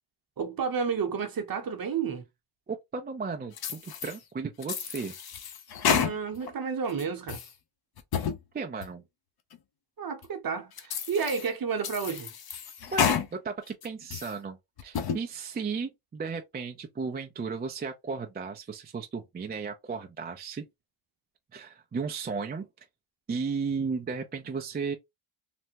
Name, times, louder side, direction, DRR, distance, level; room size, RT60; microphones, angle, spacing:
voice 1, 0.4-2.2 5.9-7.4 10.0-12.3, right 6 dB, 45° right, 0.8 m, -31 dB
voice 2, 2.7-5.1 8.5-9.0 12.9-20.6 21.5-22.7 23.3-24.9, right 5 dB, 20° right, 0.4 m, -35 dB
sound 1, 3.6-4.2 4.6-6.5 6.9-7.5 8.0-8.4 8.8-8.9 9.5-9.6 10.2-10.3 10.8-11.5 11.8-13.3 13.7-14.3 14.8-15.2, left 7 dB, 50° left, 0.6 m, -30 dB
3.4 x 2.0 x 2.8 m
cardioid pair, 95°, 50 cm